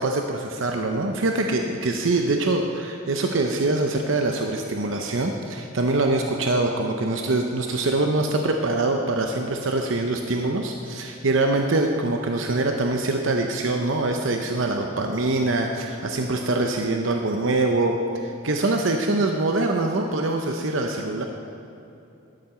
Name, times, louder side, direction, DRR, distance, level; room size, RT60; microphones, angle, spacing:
voice 1, 0.0-18.0 18.2-21.2, right 2 dB, 80° right, 3 dB, 0.8 m, -24 dB
11.5 x 11.5 x 4.3 m, 2.8 s
head